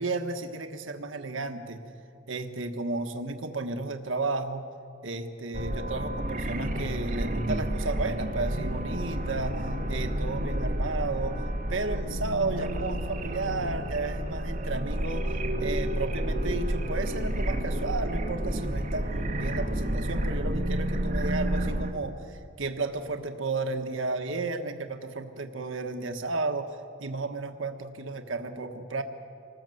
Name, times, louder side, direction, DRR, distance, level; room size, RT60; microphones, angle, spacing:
voice 1, 0.0-1.8 2.3-4.7 5.0-11.4 11.7-29.0, right 3 dB, 75° right, 6 dB, 1.4 m, -33 dB
sound 1, 5.5-21.9, right 1 dB, 40° right, 1.9 m, -30 dB
26.5 x 19.5 x 7.9 m, 2.7 s
head